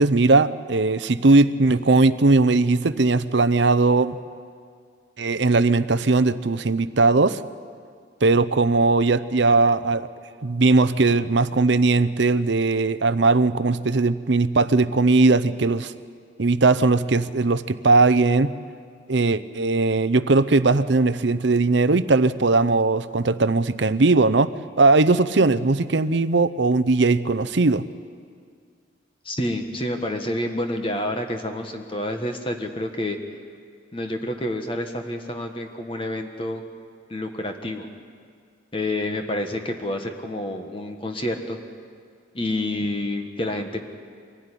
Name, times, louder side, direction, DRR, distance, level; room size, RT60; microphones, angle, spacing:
voice 1, 0.0-4.2 5.2-7.4 8.2-10.1 10.4-15.9 16.4-18.6 19.1-27.8, right 3 dB, 65° right, 14 dB, 0.7 m, -19 dB
voice 2, 29.2-33.2 33.9-36.6 37.1-37.9 38.7-41.6 42.3-43.9, left 1 dB, 25° left, 5 dB, 1.4 m, -28 dB
24.0 x 16.5 x 9.9 m, 2.1 s
head